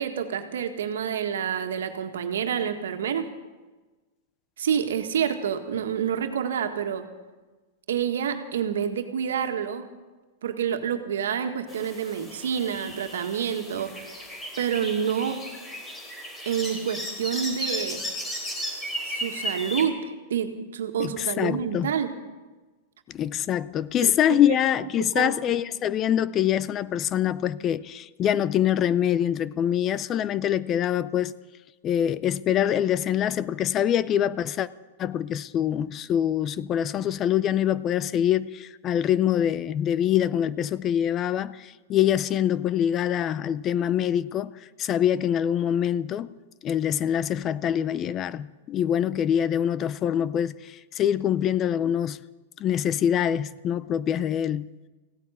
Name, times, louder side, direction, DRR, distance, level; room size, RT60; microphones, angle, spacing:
voice 1, 0.0-3.3 4.6-7.0 7.9-9.9 10.4-14.1 14.6-15.4 16.5-18.0 19.0-20.0 20.3-22.1 24.0-24.6 25.0-25.3, right 8 dB, 85° right, 1.7 m, -28 dB
sound 1, 11.7-19.8, equal, 15° left, 3.4 m, -35 dB
voice 2, 21.0-21.9 23.1-31.3 31.8-34.7 35.0-44.5 44.8-46.3 46.6-52.2 52.6-54.7, left 10 dB, 30° left, 0.5 m, -24 dB
16.0 x 9.1 x 9.8 m
hypercardioid pair, 130°, 0 cm